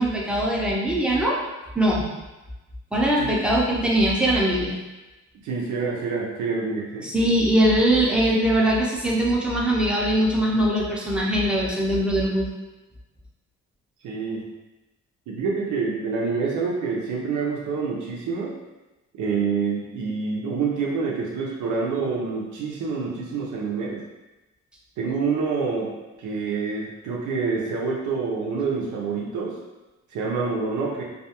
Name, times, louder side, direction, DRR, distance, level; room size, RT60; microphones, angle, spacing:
voice 1, 0.0-1.4 1.7-2.1 2.9-4.7 7.0-12.5, right 1 dB, 5° right, -4 dB, 0.6 m, -21 dB
voice 2, 5.4-7.1 14.0-14.5 15.3-18.5 19.2-24.0 25.0-25.9 26.2-29.6 30.1-31.0, right 4 dB, 75° right, -3 dB, 0.7 m, -27 dB
2.4 x 2.3 x 2.8 m, 1.1 s
cardioid pair, 90°, 30 cm